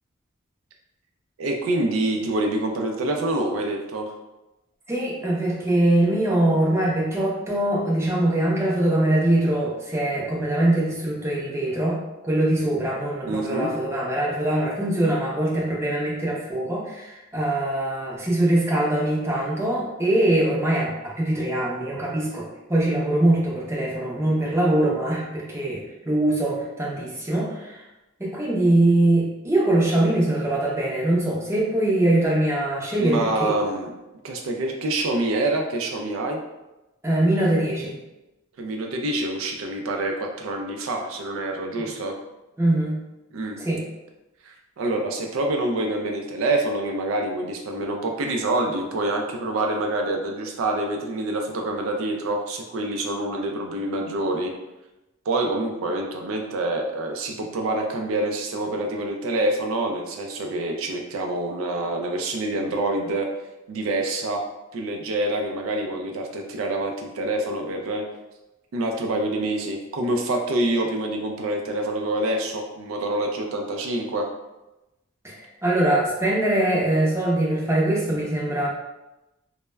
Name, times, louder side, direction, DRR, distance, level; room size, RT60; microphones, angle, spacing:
voice 1, 1.4-4.1 13.3-13.7 33.0-33.9 34.2-36.4 38.6-42.1 43.3-43.6 44.4-54.5 55.3-63.3 63.7-64.4 64.7-68.0 68.7-74.3, right 2 dB, 75° right, 2 dB, 0.3 m, -26 dB
voice 2, 4.9-12.0 12.2-27.8 28.2-33.5 37.0-38.0 41.8-41.9 42.6-43.0 43.6-43.8 75.2-75.4 75.6-78.7, right 1 dB, 15° right, -5 dB, 0.5 m, -22 dB
2.2 x 2.0 x 3.2 m, 0.99 s
head